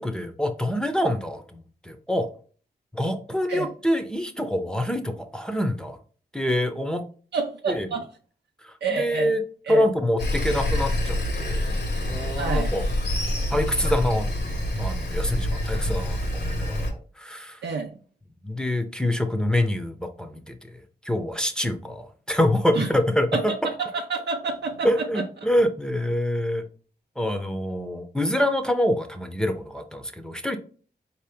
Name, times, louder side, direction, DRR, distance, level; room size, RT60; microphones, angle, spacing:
voice 1, 0.0-2.3 2.9-6.0 6.3-7.0 7.7-7.9 8.6-9.4 9.7-11.7 12.1-12.9 13.5-14.3 14.8-17.6 18.4-20.5 21.1-23.3 24.8-26.6 27.2-30.6, left 1 dB, 5° left, 5 dB, 0.7 m, -26 dB
voice 2, 7.3-8.1 8.8-9.3 9.7-9.9 12.4-12.7 17.6-18.0 22.7-22.9 23.3-25.2, right 4 dB, 80° right, 0 dB, 0.5 m, -28 dB
Sawing, 10.2-16.9, left 1 dB, 75° left, 1.2 m, -26 dB
4.5 x 2.9 x 3.4 m, 0.41 s
cardioid pair, 60°, 17 cm